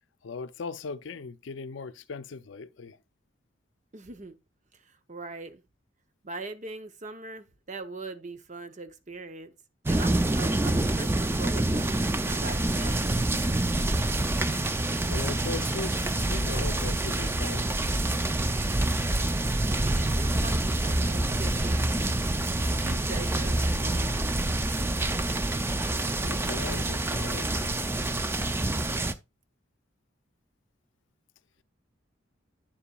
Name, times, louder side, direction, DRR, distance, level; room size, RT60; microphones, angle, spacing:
voice 1, 0.2-3.0 15.0-17.7 26.2-27.7, left 4 dB, 75° left, 0.5 m, -38 dB
voice 2, 3.9-4.4 4.7-5.6 6.2-9.5 9.9-13.0 19.7-21.8 22.7-24.2, right 3 dB, 40° right, 0.7 m, -41 dB
sound 1, 9.9-29.1, right 1 dB, 10° right, 0.4 m, -27 dB
9.5 x 7.0 x 2.3 m
head